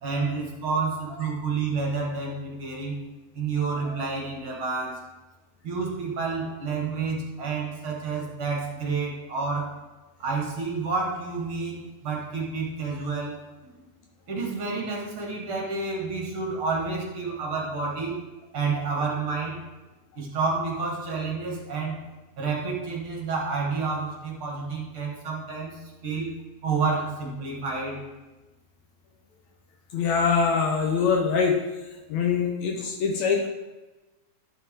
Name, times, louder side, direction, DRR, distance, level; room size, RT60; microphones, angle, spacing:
voice 1, 0.0-3.0 3.3-5.1 5.6-9.8 10.2-13.8 14.3-18.2 18.5-19.6 20.2-22.0 22.4-26.3 26.6-28.0, right 4 dB, 50° right, -2 dB, 2.4 m, -29 dB
voice 2, 29.9-31.6 32.1-33.5, left 5 dB, 75° left, 1 dB, 2.0 m, -24 dB
12.0 x 5.9 x 3.7 m, 1.1 s
omnidirectional pair, 3.4 m